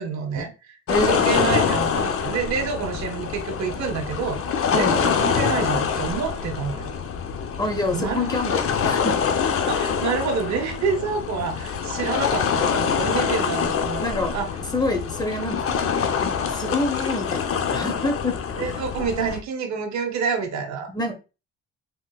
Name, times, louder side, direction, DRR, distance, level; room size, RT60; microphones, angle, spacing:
voice 1, 0.0-0.8 1.0-4.4 4.7-7.0 7.9-8.3 9.7-14.5 18.5-21.1, right 5 dB, 65° right, 4 dB, 0.8 m, -28 dB
sound 1, 0.9-19.4, left 7 dB, 50° left, 0.5 m, -25 dB
voice 2, 0.9-1.5 4.7-5.0 7.6-9.1 14.0-14.3 14.7-15.8 16.2-18.7 20.9-21.1, left 2 dB, 15° left, 4 dB, 0.8 m, -27 dB
3.5 x 2.6 x 2.2 m, 0.31 s
cardioid pair, 90°, 30 cm